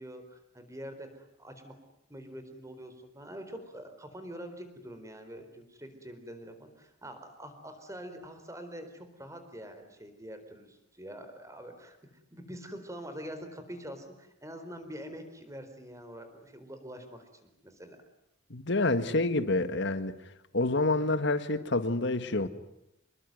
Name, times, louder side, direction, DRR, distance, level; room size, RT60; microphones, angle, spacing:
voice 1, 0.0-1.7 2.1-12.0 12.3-18.0, equal, 15° right, 4.2 m, -45 dB
voice 2, 18.5-20.2 20.5-22.5, left 2 dB, 60° left, 1.8 m, -28 dB
27.5 x 22.0 x 9.4 m
head